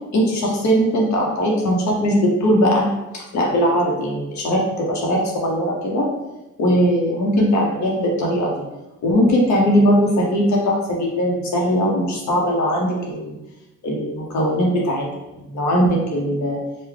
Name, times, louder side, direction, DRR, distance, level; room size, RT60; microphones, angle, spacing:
voice 1, 0.1-2.9 3.1-6.1 6.6-8.6 9.0-13.4 13.8-15.1 15.4-16.6, equal, 65° left, -2 dB, 0.8 m, -19 dB
3.6 x 2.1 x 3.2 m, 1.0 s
cardioid pair, 90°, 30 cm